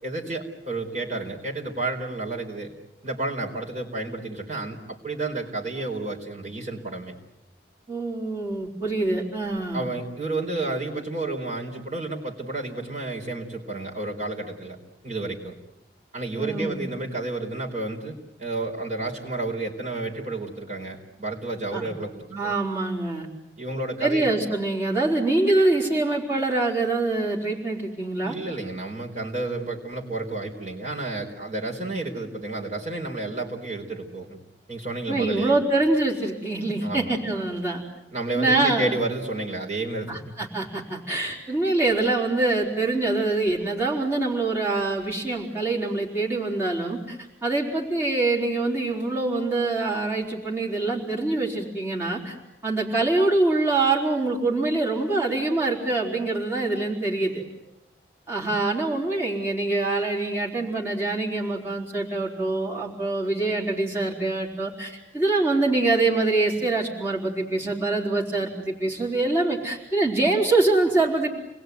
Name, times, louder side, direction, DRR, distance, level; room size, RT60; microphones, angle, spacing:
voice 1, 0.0-2.7 3.0-7.1 9.7-14.8 15.0-15.5 16.1-22.5 23.6-24.4 28.2-34.4 34.7-35.5 36.8-37.1 38.1-40.3, right 2 dB, 40° right, -2 dB, 4.3 m, -31 dB
voice 2, 7.9-9.8 16.4-16.8 21.7-21.9 22.3-23.3 24.0-28.4 35.1-37.8 38.3-38.9 40.1-52.4 52.6-57.4 58.3-71.3, right 2 dB, 15° right, -5 dB, 4.0 m, -24 dB
29.5 x 21.0 x 9.4 m, 0.91 s
head